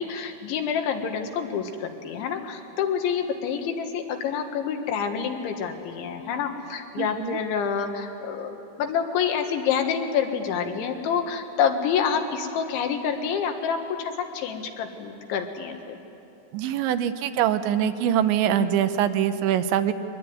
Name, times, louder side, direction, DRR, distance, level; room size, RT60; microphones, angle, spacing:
voice 1, 0.0-16.0, left 7 dB, 80° left, 5 dB, 3.9 m, -27 dB
voice 2, 7.0-7.4 16.5-19.9, right 10 dB, 80° right, 10 dB, 3.1 m, -23 dB
23.0 x 21.0 x 9.5 m, 2.9 s
omnidirectional pair, 5.3 m